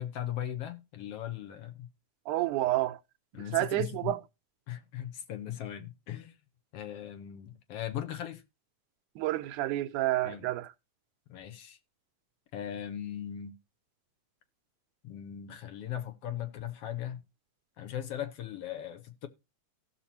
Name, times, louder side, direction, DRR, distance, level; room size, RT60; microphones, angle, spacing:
voice 1, 0.0-1.9 3.3-4.2 4.7-6.3 6.7-8.4 10.2-10.4 11.3-11.8 12.5-13.6 15.0-17.2 17.8-19.3, left 11 dB, 65° left, 1.7 m, -38 dB
voice 2, 2.3-3.0 3.5-4.2 9.2-10.7, right 16 dB, 85° right, 2.1 m, -29 dB
16.5 x 5.9 x 2.8 m
omnidirectional pair, 3.5 m